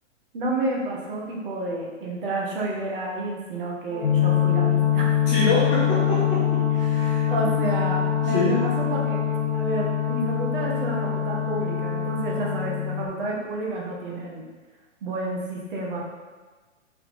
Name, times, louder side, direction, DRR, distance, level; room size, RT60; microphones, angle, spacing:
voice 1, 0.3-5.2 7.3-9.2 9.5-14.4 15.0-16.0, right 2 dB, 45° right, -2 dB, 0.9 m, -30 dB
Brass instrument, 3.9-12.8, right 3 dB, 60° right, 1.3 m, -34 dB
sound 1, 4.0-13.1, left 13 dB, 65° left, 0.7 m, -24 dB
voice 2, 5.3-7.3 8.2-8.5, left 2 dB, 20° left, -6 dB, 0.6 m, -26 dB
3.3 x 2.8 x 3.9 m, 1.3 s
hypercardioid pair, 130°, 37 cm